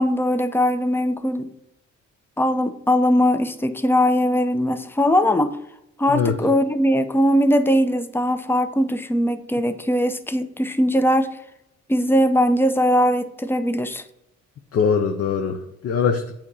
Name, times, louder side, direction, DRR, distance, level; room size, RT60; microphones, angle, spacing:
voice 1, 0.0-1.5 2.4-5.6 6.0-11.3 11.9-14.0, equal, 10° left, 10 dB, 0.5 m, -20 dB
voice 2, 14.7-16.3, left 6 dB, 50° left, 5 dB, 0.7 m, -22 dB
8.3 x 2.9 x 4.7 m, 0.84 s
cardioid pair, 90°, 30 cm